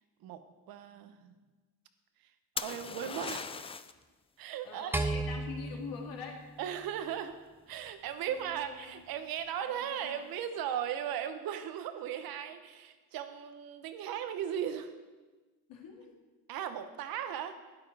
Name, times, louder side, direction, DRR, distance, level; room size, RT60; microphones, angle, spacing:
voice 1, 0.7-1.3 2.6-3.5 4.4-4.9 6.6-7.3 7.7-14.9 16.5-17.6, right 9 dB, 75° right, 9 dB, 1.1 m, -37 dB
sound 1, 2.6-4.0 7.7-8.1, left 5 dB, 15° left, 0.4 m, -39 dB
voice 2, 4.6-6.4 8.3-8.9 9.8-10.2 15.7-16.1, left 5 dB, 70° left, 0 dB, 2.8 m, -44 dB
sound 2, 4.9-7.3, right 2 dB, 5° right, 0.9 m, -35 dB
12.0 x 9.6 x 4.8 m, 1.3 s
cardioid pair, 110°, 36 cm